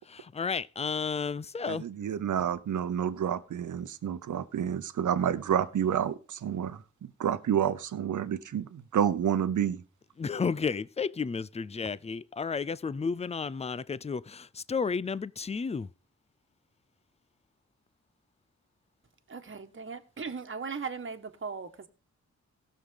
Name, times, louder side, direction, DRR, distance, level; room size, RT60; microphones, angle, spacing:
voice 1, 0.1-1.8 10.2-15.9, left 5 dB, 20° left, 0.5 m, -32 dB
voice 2, 1.7-9.8, right 9 dB, 80° right, 0.9 m, -29 dB
voice 3, 19.3-21.9, right 5 dB, 40° right, 1.4 m, -38 dB
16.5 x 6.5 x 3.8 m
cardioid pair, 65°, 30 cm